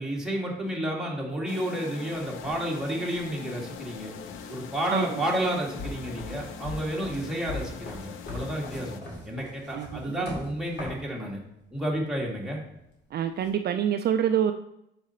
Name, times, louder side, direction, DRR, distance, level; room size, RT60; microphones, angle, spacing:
voice 1, 0.0-4.1 4.5-9.0 9.3-11.4 11.7-12.6, right 1 dB, 5° right, -3 dB, 1.9 m, -31 dB
sound 1, 1.5-9.0, left 7 dB, 90° left, 0.6 m, -42 dB
sound 2, 2.1-11.1 12.0-12.2 13.4-13.5, left 2 dB, 60° left, 2.2 m, -41 dB
voice 2, 9.7-10.2 13.1-14.5, right 9 dB, 55° right, 8 dB, 0.4 m, -26 dB
4.8 x 4.2 x 5.5 m, 0.82 s
cardioid pair, 90°, 20 cm